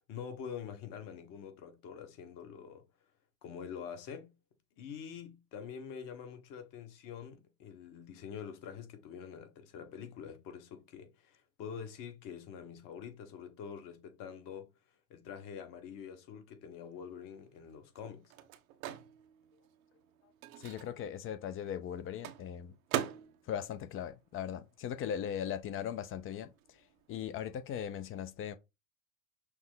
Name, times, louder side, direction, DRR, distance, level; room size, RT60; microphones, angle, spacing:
voice 1, 0.1-2.9 3.4-4.3 4.8-14.7 15.1-18.3, left 7 dB, 50° left, 1.3 m, -46 dB
Microwave oven, 17.0-25.1 25.4-27.3, right 11 dB, 75° right, 0.8 m, -44 dB
voice 2, 20.6-22.7 23.5-26.5 27.1-28.6, left 9 dB, 30° left, 0.5 m, -38 dB
6.1 x 2.0 x 3.8 m
hypercardioid pair, 100°, 42 cm